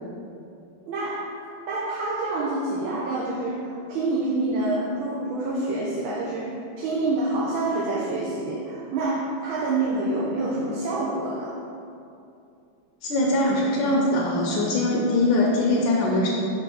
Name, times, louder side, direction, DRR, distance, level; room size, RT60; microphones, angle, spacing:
voice 1, 0.9-11.5, right 2 dB, 85° right, -6 dB, 1.5 m, -27 dB
voice 2, 13.0-16.3, left 1 dB, 75° left, -3 dB, 1.4 m, -22 dB
5.3 x 3.3 x 5.6 m, 2.6 s
omnidirectional pair, 2.1 m